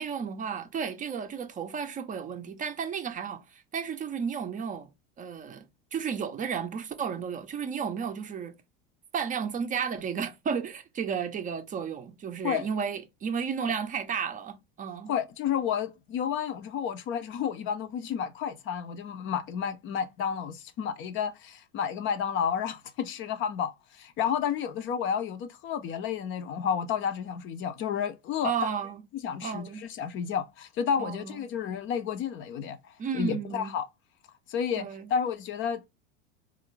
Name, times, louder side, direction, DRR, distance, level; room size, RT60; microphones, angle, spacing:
voice 1, 0.0-4.9 5.2-5.7 5.9-8.5 9.1-15.1 28.4-29.0 29.4-29.8 31.0-31.4 33.0-33.7 34.8-35.1, right 7 dB, 25° right, 0.5 m, -33 dB
voice 2, 15.1-28.7 29.2-33.9 34.5-35.9, left 8 dB, 40° left, 0.6 m, -31 dB
4.2 x 2.5 x 3.1 m
supercardioid pair, 105°, 31 cm